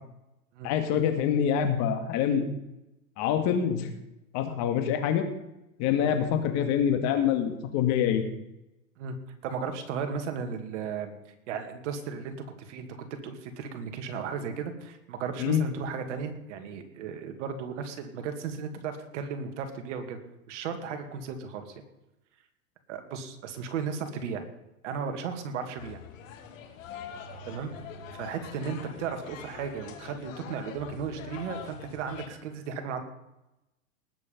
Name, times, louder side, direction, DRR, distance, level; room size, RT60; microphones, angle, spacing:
voice 1, 0.6-2.5 3.2-3.9 4.3-5.2 5.8-8.2 15.4-15.6, left 9 dB, 35° left, 7 dB, 2.1 m, -25 dB
voice 2, 9.4-11.1 11.5-20.2 20.5-21.8 22.9-24.5 24.8-26.0 27.5-27.7 28.1-33.0, right 6 dB, 55° right, 6 dB, 2.4 m, -35 dB
sound 1, 25.8-32.3, left 7 dB, 60° left, 2.3 m, -44 dB
19.5 x 7.6 x 5.3 m, 0.91 s
hypercardioid pair, 145°, 44 cm